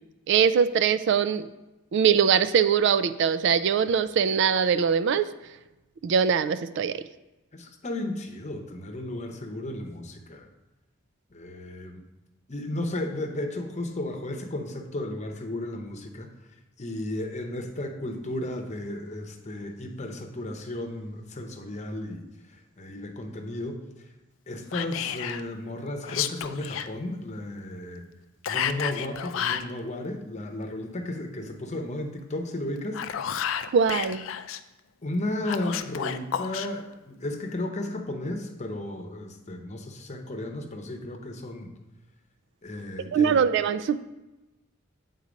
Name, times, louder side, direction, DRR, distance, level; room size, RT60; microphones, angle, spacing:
voice 1, 0.3-1.5 1.9-5.3 6.0-7.0 33.7-34.3 43.1-44.0, right 7 dB, 60° right, 13 dB, 0.3 m, -22 dB
voice 2, 7.5-10.5 11.3-12.0 12.5-16.3 16.8-22.2 22.5-23.8 24.5-28.1 28.5-33.0 35.0-41.7 42.6-43.4, left 1 dB, 35° left, 4 dB, 0.8 m, -34 dB
Whispering, 24.7-25.4 26.0-26.9 28.4-29.7 32.8-34.6 35.4-36.7, left 9 dB, 70° left, 0.4 m, -31 dB
8.3 x 4.0 x 5.1 m, 1.0 s
head